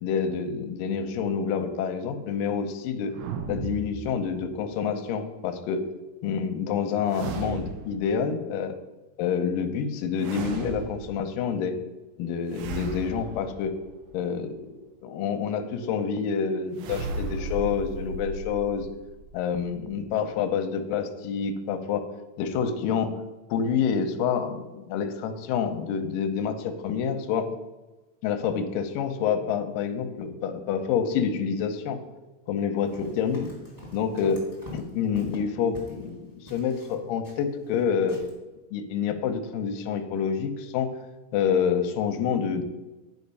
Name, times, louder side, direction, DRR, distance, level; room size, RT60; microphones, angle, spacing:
voice 1, 0.0-3.1 3.5-5.8 6.2-8.7 9.2-11.8 12.2-13.7 14.1-14.6 15.0-18.9 19.3-22.1 22.4-23.1 23.5-27.5 28.2-32.0 32.5-33.5 33.9-34.5 34.7-38.2 38.7-40.9 41.3-42.6, left 7 dB, 80° left, 6 dB, 2.1 m, -27 dB
sound 1, 3.1-4.6 7.1-8.1 10.2-11.4 12.5-14.3 16.8-20.3, right 3 dB, 90° right, 2.8 m, -36 dB
Run, 32.8-36.1 36.5-37.8 38.1-38.3, left 1 dB, 10° right, 1.3 m, -44 dB
9.8 x 5.0 x 5.4 m, 1.1 s
omnidirectional pair, 4.7 m